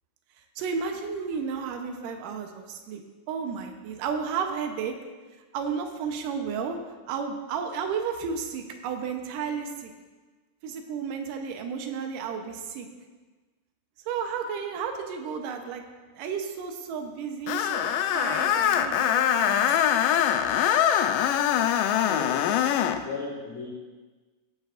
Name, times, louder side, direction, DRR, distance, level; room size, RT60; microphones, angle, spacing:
voice 1, 0.6-3.0 3.3-4.9 5.5-6.8 7.1-9.9 10.6-12.9 14.1-15.8 16.1-17.9 18.1-20.0, right 6 dB, 80° right, 4 dB, 2.5 m, -32 dB
Screech, 17.5-23.0, left 10 dB, 90° left, 2.3 m, -23 dB
voice 2, 22.1-22.4 23.0-23.7, left 4 dB, 55° left, -5 dB, 3.0 m, -35 dB
17.0 x 10.5 x 2.5 m, 1.3 s
omnidirectional pair, 3.8 m